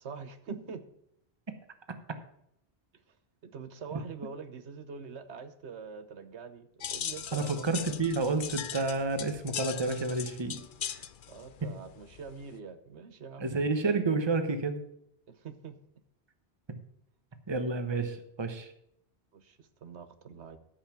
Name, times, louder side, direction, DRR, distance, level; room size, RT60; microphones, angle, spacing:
voice 1, 0.0-0.8 3.4-7.7 11.3-13.5 15.4-15.8 19.3-20.6, right 5 dB, 85° right, 10 dB, 1.2 m, -44 dB
sound 1, 6.8-12.6, left 9 dB, 55° left, 0.7 m, -40 dB
voice 2, 7.3-11.0 11.6-11.7 13.4-14.8 16.7-16.8 17.5-18.7, right 3 dB, 25° right, 9 dB, 1.0 m, -30 dB
13.5 x 5.7 x 5.9 m, 0.73 s
omnidirectional pair, 1.1 m